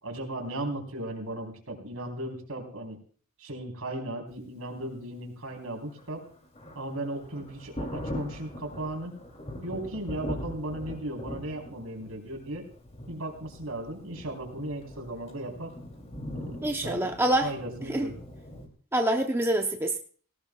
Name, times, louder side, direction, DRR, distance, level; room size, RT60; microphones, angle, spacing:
voice 1, 0.0-3.0 3.4-6.3 6.8-9.2 9.6-12.7 13.1-15.8 16.3-17.1 17.4-18.2, right 1 dB, 70° right, 2 dB, 4.1 m, -36 dB
Thunder, 5.8-18.7, equal, 30° left, 3.0 m, -41 dB
voice 2, 16.6-17.5 17.9-18.1 18.9-20.0, right 1 dB, 10° right, 3 dB, 0.8 m, -26 dB
18.0 x 18.0 x 2.4 m, 0.43 s
head